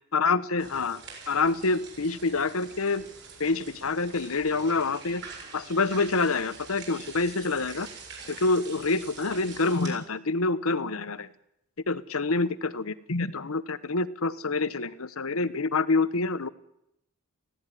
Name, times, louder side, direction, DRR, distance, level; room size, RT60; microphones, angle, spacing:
voice 1, 0.1-3.1 3.4-5.2 5.5-7.9 8.3-11.3 11.9-16.5, left 3 dB, 70° left, 15 dB, 1.0 m, -27 dB
sound 1, 0.6-9.9, right 5 dB, 50° right, 7.3 m, -46 dB
18.5 x 16.5 x 10.0 m, 0.81 s
head